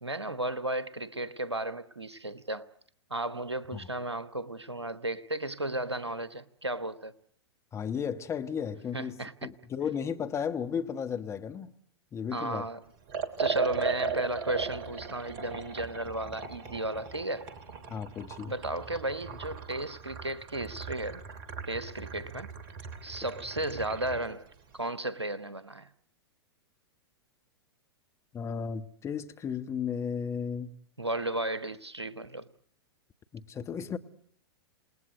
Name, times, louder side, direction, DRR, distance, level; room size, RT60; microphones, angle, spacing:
voice 1, 0.0-2.7 3.1-7.1 8.9-9.3 12.3-12.8 13.4-17.5 18.5-21.2 21.7-22.5 23.0-24.5 24.7-25.9 31.0-32.5, right 1 dB, 90° right, 1.2 m, -34 dB
voice 2, 7.7-11.7 12.1-12.6 17.9-18.5 28.3-30.7 33.3-34.0, left 7 dB, 20° left, 1.5 m, -34 dB
Liquid, 13.1-24.3, right 5 dB, 40° right, 2.9 m, -37 dB
28.0 x 20.0 x 7.9 m
figure-of-eight pair, 100°, 14 cm